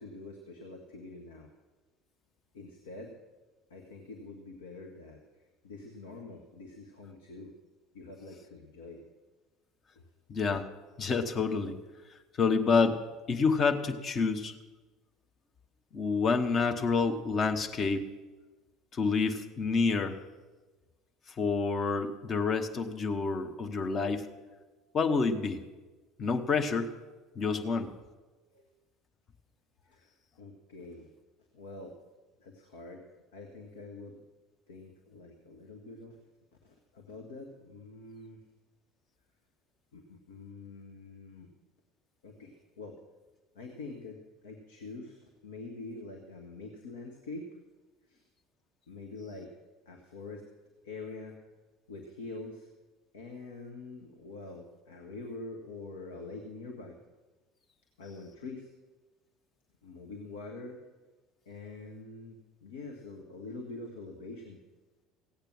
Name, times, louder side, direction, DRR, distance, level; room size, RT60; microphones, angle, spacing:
voice 1, 0.0-1.5 2.5-3.2 3.7-7.5 7.9-9.0 9.9-10.1 28.5-28.7 29.8-31.1 31.5-32.0 32.4-33.0 33.3-34.2 34.7-36.2 36.6-38.4 39.9-41.5 42.2-43.0 43.5-44.2 44.4-47.5 48.1-48.3 48.9-49.5 49.8-50.4 50.8-51.3 51.9-52.7 53.1-57.0 58.0-58.7 59.8-60.8 61.4-64.6, left 3 dB, 70° left, 3 dB, 1.3 m, -45 dB
voice 2, 10.3-10.7 11.0-11.8 12.4-13.0 13.3-14.5 15.9-18.0 18.9-20.2 21.4-24.3 24.9-25.6 26.2-26.9 27.3-27.9, left 4 dB, 35° left, 5 dB, 1.2 m, -28 dB
16.0 x 8.8 x 6.1 m, 1.3 s
figure-of-eight pair, 65°, 0 cm